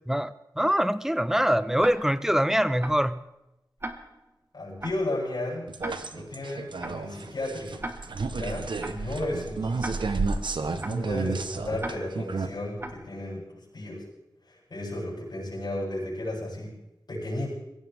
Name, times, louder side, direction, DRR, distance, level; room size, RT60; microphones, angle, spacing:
voice 1, 0.1-3.2, equal, 5° right, 15 dB, 0.6 m, -24 dB
Tick-tock, 1.8-2.3 2.8-3.2 3.8-4.3 4.8-5.2 5.8-6.3 6.8-7.2 7.8-8.3 8.8-9.2 9.8-10.3 10.8-11.2 11.8-12.3 12.8-13.2, right 1 dB, 30° right, 1.6 m, -39 dB
voice 2, 4.5-5.7 6.1-7.9 8.3-9.9 10.8-14.1 14.5-16.8 17.1-17.5, left 1 dB, 65° left, -6 dB, 7.9 m, -34 dB
sound 1, 5.7-12.5, right 3 dB, 90° right, 1.0 m, -31 dB
22.5 x 16.5 x 3.6 m, 0.92 s
wide cardioid pair, 90°, 8 cm